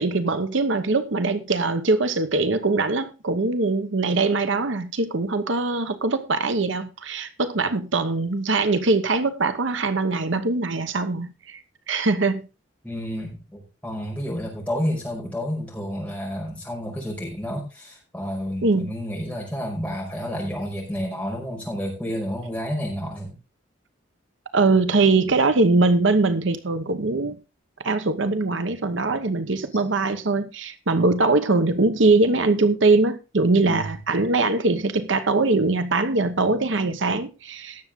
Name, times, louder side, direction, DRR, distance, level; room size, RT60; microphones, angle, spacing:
voice 1, 0.0-11.6 11.9-12.4 18.6-18.9 24.5-27.4 27.8-37.8, right 3 dB, 70° right, 1.0 m, -22 dB
voice 2, 12.8-23.3 33.6-34.0, equal, 5° left, 5.4 m, -30 dB
18.0 x 7.1 x 3.6 m
head